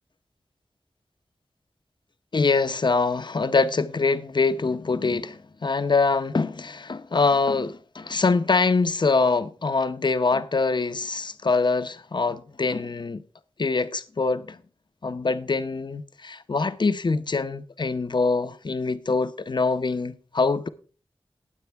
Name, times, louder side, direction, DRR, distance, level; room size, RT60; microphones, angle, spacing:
voice 1, 2.3-13.2 13.6-14.6 15.0-20.7, left 4 dB, 50° left, 0.8 m, -24 dB
19.0 x 8.0 x 3.4 m
wide cardioid pair, 90°, 10 cm